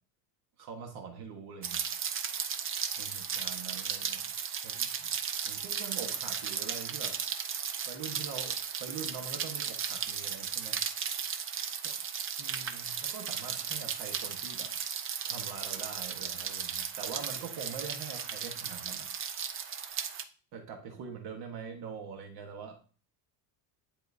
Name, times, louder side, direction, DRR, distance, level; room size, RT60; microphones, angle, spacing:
voice 1, 0.6-1.8 3.0-4.3 4.6-5.1 5.5-7.5 7.9-10.8 11.8-11.9 12.4-14.7 15.3-19.4 20.5-23.0, right 6 dB, 55° right, 3 dB, 1.5 m, -44 dB
Rain, 1.6-20.2, right 7 dB, 30° right, 0.5 m, -35 dB
10.5 x 4.3 x 2.7 m, 0.38 s
cardioid pair, 150°, 46 cm